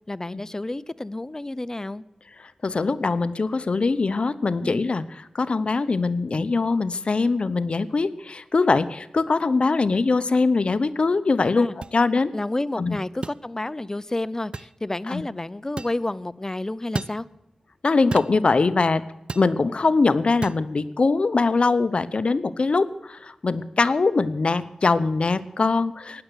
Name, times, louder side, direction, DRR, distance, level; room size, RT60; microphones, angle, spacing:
voice 1, 0.1-2.0 4.6-4.9 11.5-11.8 12.3-17.3, left 2 dB, 25° left, 17 dB, 0.6 m, -30 dB
voice 2, 2.6-5.0 5.3-11.7 11.9-12.3 12.8-13.0 15.1-15.2 17.8-19.0 19.3-26.2, left 3 dB, 60° left, 15 dB, 0.8 m, -22 dB
sound 1, 11.8-12.0 13.2-13.4 14.5-14.7 15.8-16.0 16.9-17.2 18.1-18.4 19.3-19.5 20.4-20.6, right 3 dB, 55° right, 0.5 m, -31 dB
16.0 x 10.5 x 8.0 m, 0.92 s
wide cardioid pair, 60°, 2 cm